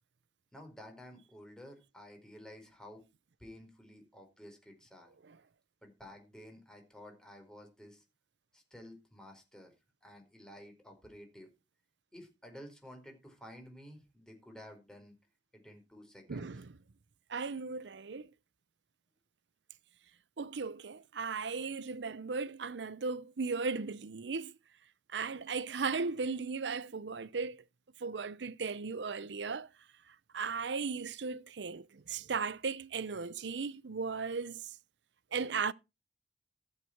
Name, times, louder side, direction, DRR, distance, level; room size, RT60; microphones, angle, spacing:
voice 1, 0.5-3.0 3.4-5.1 5.8-8.0 8.5-9.7 10.0-11.5 12.1-15.1 15.5-16.5, equal, 5° left, 4.6 m, -52 dB
voice 2, 16.3-16.8 17.3-18.3 20.4-24.5 25.1-27.6 28.0-29.7 30.3-34.8 35.3-35.7, right 4 dB, 90° right, 0.7 m, -36 dB
14.5 x 8.0 x 4.5 m
head